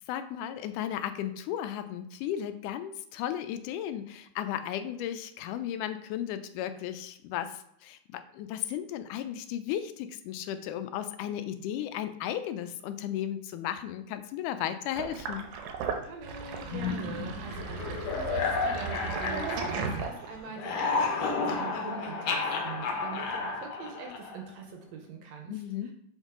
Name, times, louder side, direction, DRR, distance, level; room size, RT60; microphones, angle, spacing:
voice 1, 0.1-15.5 25.5-25.9, left 10 dB, 85° left, 10 dB, 2.1 m, -35 dB
Sink (filling or washing), 15.0-20.5, right 5 dB, 90° right, 2.3 m, -36 dB
voice 2, 16.0-25.9, right 5 dB, 70° right, 2 dB, 1.9 m, -43 dB
sound 1, 16.7-20.2 20.5-24.5, left 4 dB, 65° left, 1.7 m, -32 dB
6.2 x 5.4 x 3.7 m, 0.73 s
omnidirectional pair, 3.6 m